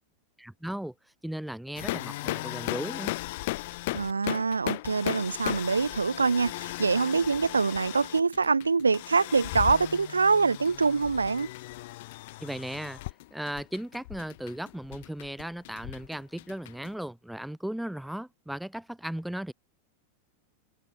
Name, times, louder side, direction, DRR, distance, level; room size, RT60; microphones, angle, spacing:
voice 1, 0.4-0.9 1.2-3.1 12.4-13.0 13.3-19.5, right 1 dB, ahead, 3.1 m, -36 dB
sound 1, 1.8-16.9, left 20 dB, 50° left, 2.1 m, -36 dB
voice 2, 3.9-11.5, right 4 dB, 75° right, 1.7 m, -25 dB
figure-of-eight pair, 90°, 0 cm